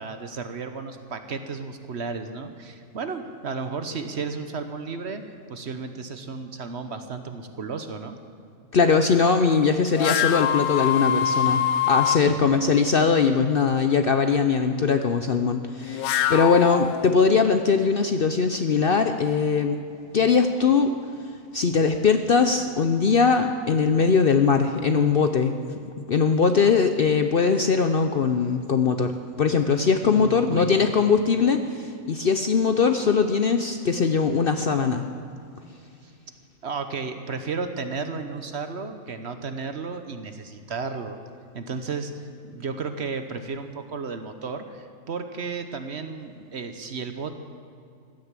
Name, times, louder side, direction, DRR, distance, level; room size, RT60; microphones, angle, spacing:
voice 1, 0.0-5.2 5.5-8.2 12.1-12.6 30.0-30.7 36.6-41.2 41.5-47.3, right 4 dB, 50° right, 8 dB, 1.2 m, -33 dB
voice 2, 8.7-19.8 20.1-20.9 21.5-25.5 26.0-35.1, left 5 dB, 50° left, 7 dB, 0.7 m, -21 dB
sound 1, 9.9-12.2 15.8-17.5, left 10 dB, 85° left, 1.2 m, -24 dB
15.5 x 11.5 x 7.4 m, 2.4 s
omnidirectional pair, 1.5 m